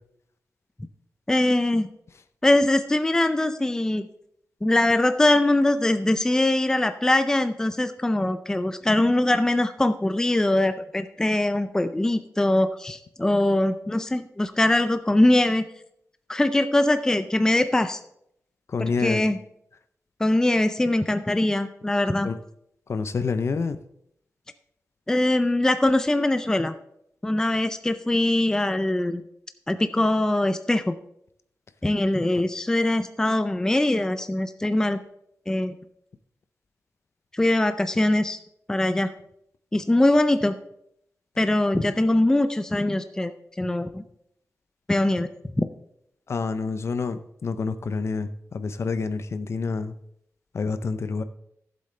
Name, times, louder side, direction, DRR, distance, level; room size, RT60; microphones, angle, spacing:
voice 1, 1.3-1.9 2.4-4.1 4.6-15.7 16.3-18.0 18.8-19.4 20.2-22.3 25.1-26.7 27.2-29.2 29.7-30.9 31.8-35.0 35.5-35.7 37.3-38.4 38.7-39.1 39.7-40.6 41.4-43.3 43.6-44.0 44.9-45.3 45.6-45.7, left 1 dB, 10° left, 10 dB, 0.4 m, -22 dB
voice 2, 18.7-19.3 22.2-22.4 22.9-23.8 46.3-49.9 50.5-51.2, left 4 dB, 55° left, 11 dB, 0.6 m, -28 dB
14.5 x 7.8 x 3.3 m, 0.75 s
wide cardioid pair, 165°, 6 cm